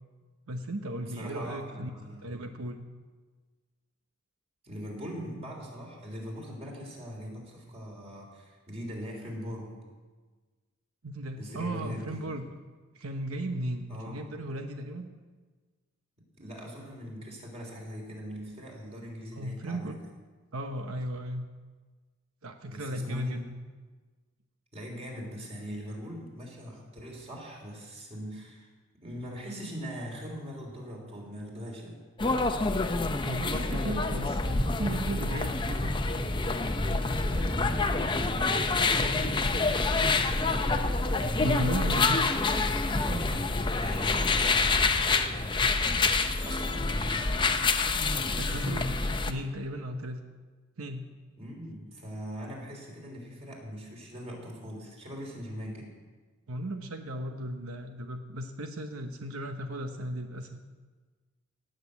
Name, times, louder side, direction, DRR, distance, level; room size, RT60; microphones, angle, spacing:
voice 1, 0.5-1.9 2.2-2.8 11.0-12.5 12.9-15.1 19.4-20.0 20.5-21.5 22.4-23.5 33.2-35.9 41.4-42.6 43.1-43.4 48.2-48.9 49.2-50.2 50.8-51.1 56.5-60.6, right 1 dB, 90° right, 6 dB, 0.9 m, -35 dB
voice 2, 1.0-2.5 4.6-9.7 11.4-12.4 13.9-14.2 16.3-20.0 22.6-23.4 24.7-28.7 29.0-31.9 37.2-40.7 43.6-47.2 48.0-48.9 51.4-55.9, equal, 30° right, 0 dB, 3.4 m, -41 dB
sound 1, 32.2-49.3, left 3 dB, 20° left, 0.7 m, -27 dB
17.5 x 6.6 x 8.3 m, 1.4 s
head